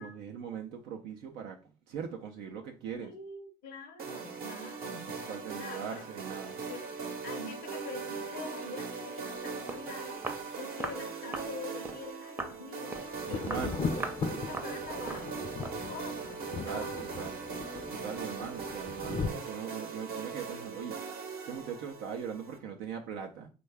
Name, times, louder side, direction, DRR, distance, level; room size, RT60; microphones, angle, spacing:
voice 1, 0.0-1.6 1.9-3.2 5.0-6.6 13.3-13.9 16.5-17.4 17.9-23.5, right 7 dB, 85° right, 0.4 m, -41 dB
voice 2, 3.0-5.1 5.6-6.0 6.7-6.9 7.2-17.0, left 4 dB, 75° left, 0.6 m, -45 dB
sound 1, 4.0-22.6, right 5 dB, 65° right, 0.8 m, -40 dB
Walk footsteps, 9.4-9.5 9.7-9.9 10.2-10.5 10.8-11.0 11.3-11.5 11.8-12.0 12.4-12.6 12.9-13.1 13.5-13.7 14.0-14.2 14.5-14.8 15.1-15.3 15.6-15.8, right 2 dB, 15° right, 0.5 m, -38 dB
Thunder, 13.2-19.3, left 5 dB, 35° left, 0.4 m, -38 dB
3.4 x 2.2 x 3.2 m
supercardioid pair, 70°, 17 cm